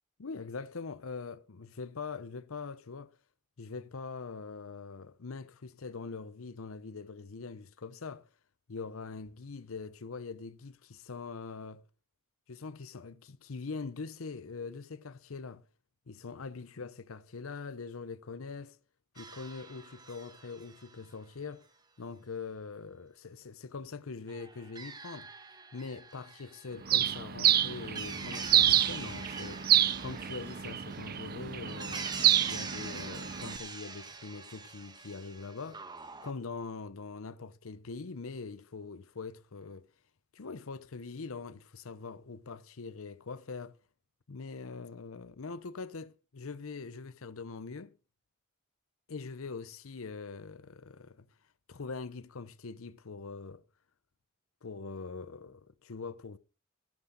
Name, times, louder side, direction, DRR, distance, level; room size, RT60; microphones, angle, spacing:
voice 1, 0.2-3.2 3.6-8.3 8.7-11.8 12.5-15.6 16.1-18.8 19.1-21.7 22.0-25.3 25.7-29.7 30.0-32.1 32.5-35.8 36.2-39.9 40.3-43.8 44.3-47.9 49.1-51.3 51.7-53.6 54.6-56.4, left 4 dB, 75° left, 0.7 m, -43 dB
sound 1, 19.2-21.1 24.3-36.3, right 4 dB, 20° right, 1.4 m, -45 dB
Bird, 26.9-33.6, right 11 dB, 45° right, 0.6 m, -28 dB
15.5 x 11.5 x 4.0 m
head